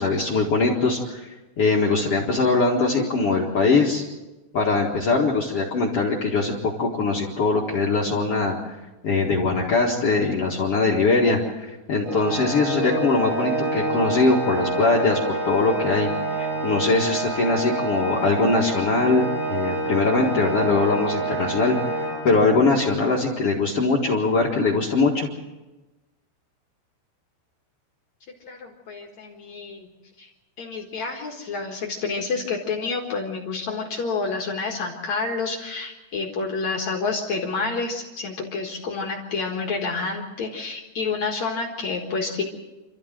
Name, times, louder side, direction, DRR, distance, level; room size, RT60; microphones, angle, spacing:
voice 1, 0.0-4.0 4.5-8.6 9.0-19.2 19.5-25.3, left 3 dB, 85° left, -2 dB, 1.3 m, -22 dB
Organ, 12.0-22.8, right 2 dB, 90° right, 9.0 m, -27 dB
voice 2, 28.4-29.9 30.2-30.3 30.6-42.4, left 4 dB, 65° left, 0 dB, 1.7 m, -29 dB
27.0 x 14.0 x 7.6 m, 1.1 s
omnidirectional pair, 5.8 m